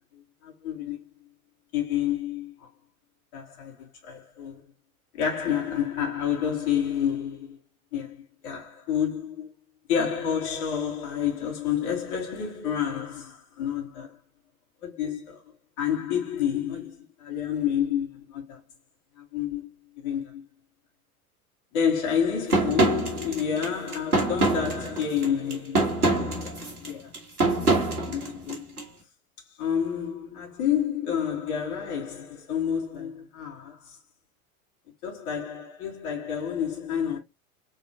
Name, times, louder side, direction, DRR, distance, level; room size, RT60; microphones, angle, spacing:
voice 1, 0.1-1.0 1.7-2.7 3.3-4.6 5.1-7.6 7.9-9.5 9.9-14.2 14.8-15.4 15.8-18.6 19.2-20.4 21.7-27.1 27.5-28.8 29.6-34.0 35.0-37.2, left 8 dB, 50° left, 2.2 m, -29 dB
sound 1, 22.5-28.8, right 2 dB, 80° right, 1.7 m, -25 dB
4.1 x 4.0 x 2.9 m
figure-of-eight pair, 80°, 44 cm